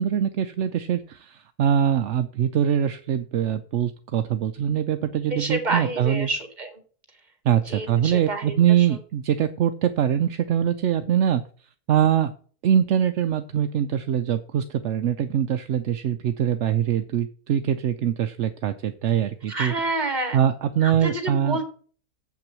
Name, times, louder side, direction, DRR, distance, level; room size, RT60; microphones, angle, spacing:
voice 1, 0.0-6.3 7.4-11.4 11.9-12.3 12.6-19.7 20.3-21.6, right 9 dB, 60° right, 9 dB, 0.8 m, -23 dB
voice 2, 5.3-6.7 7.7-8.9 19.5-20.4 20.8-21.6, right 2 dB, 30° right, 6 dB, 2.0 m, -28 dB
7.8 x 5.9 x 7.4 m, 0.43 s
omnidirectional pair, 1.6 m